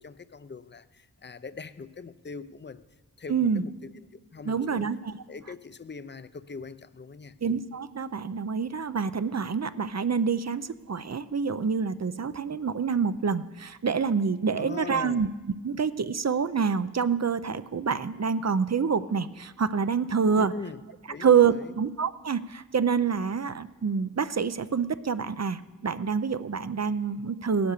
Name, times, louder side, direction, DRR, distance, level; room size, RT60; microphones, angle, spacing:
voice 1, 0.0-2.8 3.2-4.9 5.3-7.3 14.5-15.3 20.4-20.8 21.1-21.8, left 4 dB, 35° left, 0.6 m, -41 dB
voice 2, 3.3-3.6 4.5-5.1 7.4-15.3 15.6-20.5 21.2-27.7, right 6 dB, 50° right, 0.6 m, -27 dB
17.5 x 10.5 x 6.7 m
wide cardioid pair, 60°, 33 cm